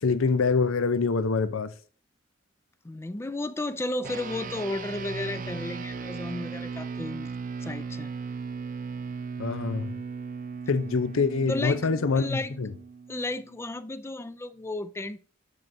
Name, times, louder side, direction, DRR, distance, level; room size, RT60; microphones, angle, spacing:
voice 1, 0.0-1.7 9.4-9.9 10.7-12.7, left 4 dB, 80° left, 0.6 m, -25 dB
voice 2, 2.8-7.3 7.6-8.1 11.5-12.6 13.1-15.2, left 2 dB, 10° left, 0.3 m, -33 dB
sound 1, 4.0-13.7, right 5 dB, 40° right, 0.5 m, -37 dB
10.5 x 6.0 x 2.7 m
head